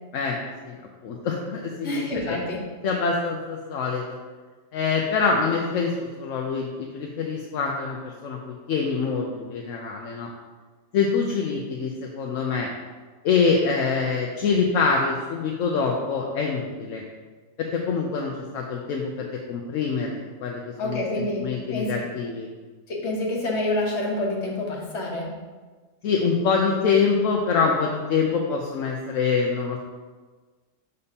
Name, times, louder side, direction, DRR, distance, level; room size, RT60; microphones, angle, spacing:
voice 1, 0.1-0.7 1.0-2.4 2.8-4.0 4.7-10.3 10.9-12.7 13.2-17.0 17.6-22.5 26.0-29.8, left 5 dB, 75° left, 0 dB, 1.0 m, -25 dB
voice 2, 1.8-2.6 20.8-22.1 22.9-25.3, left 1 dB, 60° left, -2 dB, 1.4 m, -28 dB
6.8 x 5.3 x 2.8 m, 1.4 s
omnidirectional pair, 1.3 m